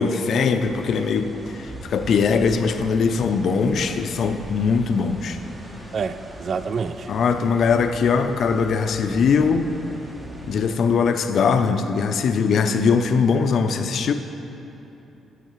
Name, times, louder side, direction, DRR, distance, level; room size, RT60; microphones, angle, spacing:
voice 1, 0.0-5.4 7.1-9.7 10.4-14.1, left 5 dB, 65° left, 8 dB, 0.4 m, -21 dB
sound 1, 0.6-10.6, right 1 dB, 20° right, 1.0 m, -40 dB
voice 2, 5.9-7.0, right 5 dB, 50° right, 12 dB, 0.3 m, -27 dB
13.5 x 6.4 x 3.1 m, 3.0 s
cardioid pair, 90°, 0 cm